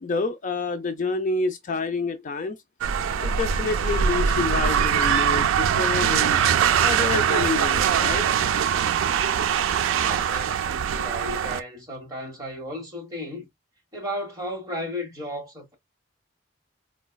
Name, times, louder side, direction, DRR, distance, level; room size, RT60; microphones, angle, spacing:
voice 1, 0.0-2.6 3.2-6.4 6.8-8.3, left 3 dB, 40° left, 0.4 m, -28 dB
sound 1, 2.8-11.6, right 8 dB, 90° right, 0.3 m, -22 dB
voice 2, 9.9-13.5 13.9-15.7, equal, 20° right, 1.2 m, -34 dB
3.9 x 2.2 x 2.2 m
head